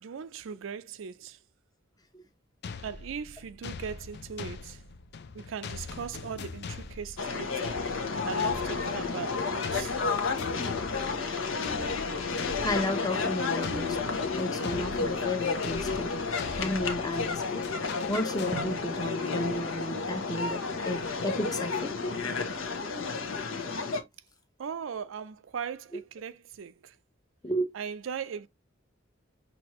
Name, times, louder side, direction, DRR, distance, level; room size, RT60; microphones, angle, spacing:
voice 1, 0.0-1.4 2.8-4.8 5.3-7.9 8.2-10.0 24.6-27.0 27.7-28.5, right 6 dB, 75° right, 0.4 m, -39 dB
sound 1, 2.6-19.1, left 4 dB, 55° left, 0.5 m, -42 dB
sound 2, 7.2-24.0, left 4 dB, 80° left, 1.0 m, -31 dB
voice 2, 12.6-16.1 16.5-17.6 18.1-22.1 27.4-27.7, left 1 dB, 20° left, 0.8 m, -33 dB
Drum, 18.5-21.0, right 3 dB, 25° right, 0.7 m, -44 dB
6.0 x 2.8 x 3.0 m
head